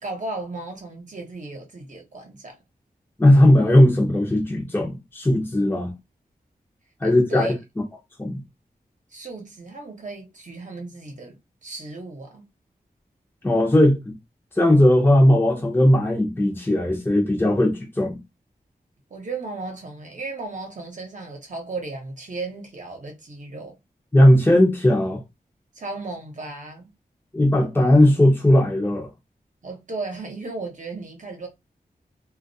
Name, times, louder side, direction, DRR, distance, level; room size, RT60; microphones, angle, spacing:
voice 1, 0.0-2.6 7.0-7.6 9.1-11.4 11.6-12.4 19.1-23.8 25.7-26.9 29.6-31.5, right 3 dB, 50° right, 0.8 m, -35 dB
voice 2, 3.2-5.9 7.0-7.5 8.2-8.4 13.4-14.1 14.6-18.2 24.1-25.2 27.3-29.1, left 1 dB, 15° left, 0.6 m, -17 dB
2.2 x 2.1 x 2.6 m
wide cardioid pair, 95°, 16 cm